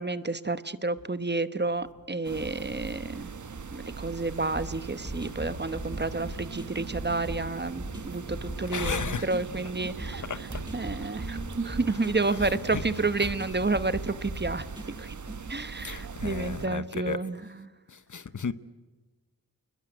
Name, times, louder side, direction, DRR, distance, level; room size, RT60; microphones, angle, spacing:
voice 1, 0.0-3.3 3.7-10.2 10.7-14.7 15.0-15.2 15.5-17.7, right 3 dB, 30° right, 1.1 m, -30 dB
sound 1, 2.2-16.7, right 5 dB, 55° right, 1.1 m, -40 dB
sound 2, 4.5-15.4, right 1 dB, 15° right, 6.2 m, -40 dB
voice 2, 8.7-9.3 10.3-10.4 10.8-10.9 12.7-12.8 15.8-17.2 17.9-18.5, left 5 dB, 60° left, 1.1 m, -33 dB
29.0 x 21.0 x 8.0 m
wide cardioid pair, 90°, 34 cm